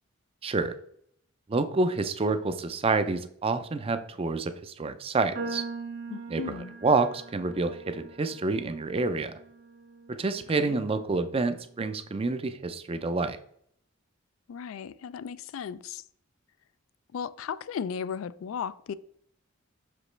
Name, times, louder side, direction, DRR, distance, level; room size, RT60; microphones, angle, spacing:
voice 1, 0.4-0.8 1.5-5.6 6.3-6.4 6.8-9.3 10.1-13.4, right 3 dB, 25° right, 0.4 m, -28 dB
sound 1, 5.3-11.7, right 3 dB, 60° right, 1.3 m, -42 dB
voice 2, 6.1-6.8 10.6-10.8 14.5-16.0 17.1-18.9, left 7 dB, 70° left, 0.3 m, -36 dB
6.4 x 5.1 x 3.2 m
head